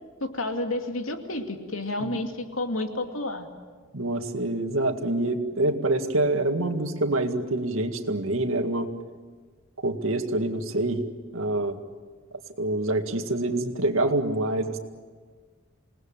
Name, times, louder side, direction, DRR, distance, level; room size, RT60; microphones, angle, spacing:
voice 1, 0.2-3.5, left 2 dB, 85° left, 5 dB, 2.5 m, -30 dB
voice 2, 3.9-8.9 9.8-11.0 11.3-11.8 12.6-14.8, right 2 dB, 85° right, 6 dB, 2.1 m, -26 dB
27.0 x 19.0 x 9.0 m, 1.5 s
head